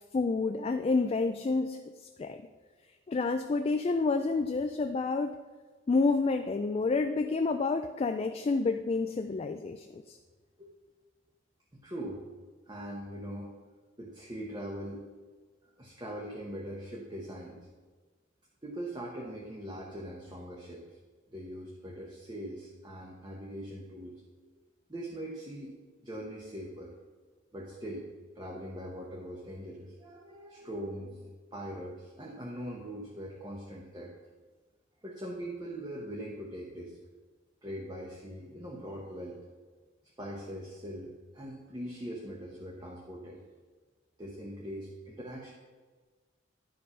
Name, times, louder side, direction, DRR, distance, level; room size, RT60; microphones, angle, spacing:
voice 1, 0.1-1.9 2.2-2.4 3.1-5.3 5.9-10.2, left 3 dB, 35° left, 7 dB, 0.3 m, -29 dB
voice 2, 11.8-12.2 12.7-13.5 14.0-15.0 15.8-17.6 18.6-21.0 21.3-24.2 24.9-25.8 26.0-26.9 27.5-28.1 28.3-34.1 35.0-37.0 37.6-39.4 40.2-43.4 44.2-45.5, equal, 25° right, -2 dB, 1.0 m, -41 dB
11.0 x 5.3 x 5.6 m, 1.4 s
head